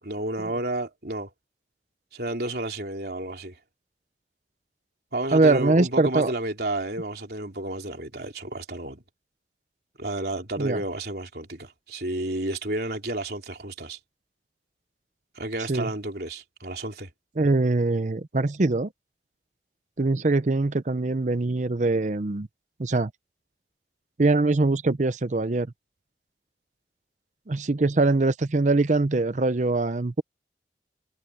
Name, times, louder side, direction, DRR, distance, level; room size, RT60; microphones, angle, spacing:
voice 1, 0.0-1.3 2.1-3.5 5.1-9.0 10.0-14.0 15.4-17.1, right 1 dB, 60° right, 3.7 m, -31 dB
voice 2, 5.3-6.3 10.6-10.8 15.7-15.9 17.4-18.9 20.0-22.5 22.8-23.1 24.2-25.7 27.5-30.2, right 3 dB, 40° right, 0.6 m, -23 dB
head